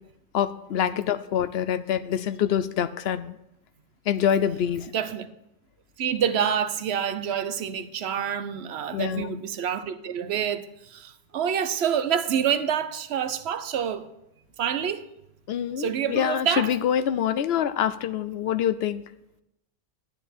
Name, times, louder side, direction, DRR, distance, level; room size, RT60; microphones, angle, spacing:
voice 1, 0.3-3.4 4.1-4.9 8.9-9.3 15.5-19.0, left 9 dB, 75° left, 0.9 m, -25 dB
voice 2, 4.9-5.3 6.0-14.1 14.6-15.1 15.8-16.7, right 8 dB, 90° right, 1.0 m, -27 dB
10.0 x 10.0 x 4.4 m
omnidirectional pair, 1.1 m